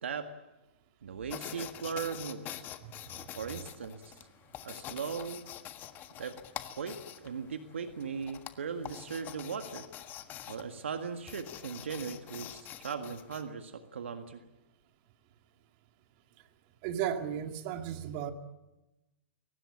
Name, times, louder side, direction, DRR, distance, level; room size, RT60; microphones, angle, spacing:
voice 1, 1.0-2.7 3.4-4.2 4.6-5.5 6.2-6.3 6.8-9.8 10.5-14.4, right 6 dB, 70° right, 7 dB, 1.8 m, -38 dB
sound 1, 1.3-13.5, left 11 dB, 30° left, 1.5 m, -46 dB
voice 2, 16.8-18.3, right 9 dB, 45° right, 5 dB, 2.5 m, -34 dB
23.0 x 19.5 x 8.7 m, 1.0 s
hypercardioid pair, 115°, 7 cm